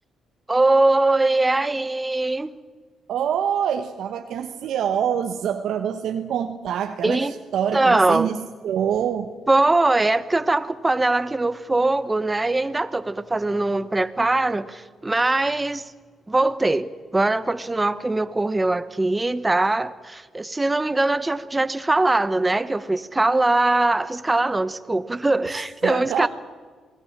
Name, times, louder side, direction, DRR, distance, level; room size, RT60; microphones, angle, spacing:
voice 1, 0.5-2.5 7.0-7.3 7.7-8.3 9.5-15.9 16.3-26.3, right 2 dB, 15° right, 1.1 m, -21 dB
voice 2, 3.1-9.3 25.8-26.3, right 8 dB, 75° right, 1.2 m, -25 dB
27.5 x 19.0 x 7.4 m
cardioid pair, 90°, 0 cm